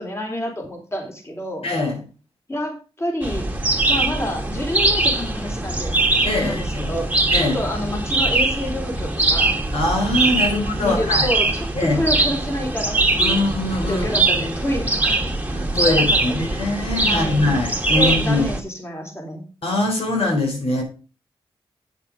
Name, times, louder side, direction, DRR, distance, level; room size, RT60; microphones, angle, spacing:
voice 1, 0.0-1.7 2.5-3.5 3.9-6.0 6.3-9.6 10.5-13.4 13.9-15.5 15.9-16.5 17.0-17.4 17.9-19.4, left 1 dB, 25° left, 1 dB, 4.0 m, -28 dB
voice 2, 1.6-2.0 6.2-6.9 7.3-7.6 9.7-11.3 11.8-12.0 13.2-14.6 15.5-18.4 19.6-20.8, left 2 dB, 75° left, 1 dB, 4.0 m, -22 dB
sound 1, 3.2-18.6, right 2 dB, 15° right, 1.7 m, -22 dB
9.0 x 7.1 x 5.2 m, 0.34 s
cardioid pair, 65°, 10 cm